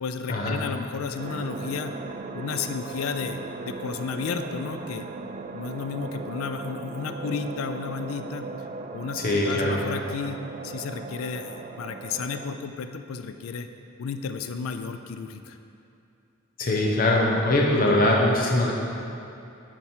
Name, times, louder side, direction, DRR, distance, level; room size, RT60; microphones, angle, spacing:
voice 1, 0.0-1.9 2.3-3.4 3.6-5.1 5.5-8.5 8.9-13.7 14.0-15.6, left 5 dB, 90° left, 8 dB, 0.4 m, -32 dB
sound 1, 1.2-12.6, right 3 dB, 35° right, 0.3 m, -38 dB
voice 2, 9.1-9.8 16.6-18.7, left 1 dB, 45° left, -2 dB, 0.8 m, -22 dB
9.0 x 4.7 x 4.4 m, 2.7 s
head